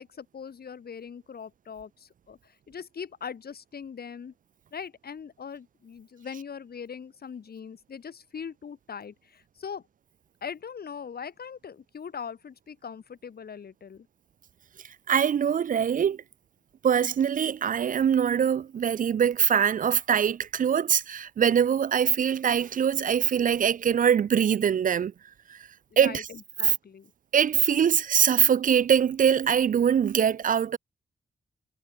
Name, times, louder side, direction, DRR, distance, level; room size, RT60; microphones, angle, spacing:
voice 1, 0.0-4.3 4.7-9.8 10.4-14.1 25.9-27.1, left 7 dB, 65° left, 2.1 m, -41 dB
voice 2, 15.1-16.2 16.8-25.1 25.5-25.6 26.0-26.3 26.6-26.7 27.3-30.8, right 8 dB, 50° right, 0.4 m, -23 dB
cardioid pair, 50°, 17 cm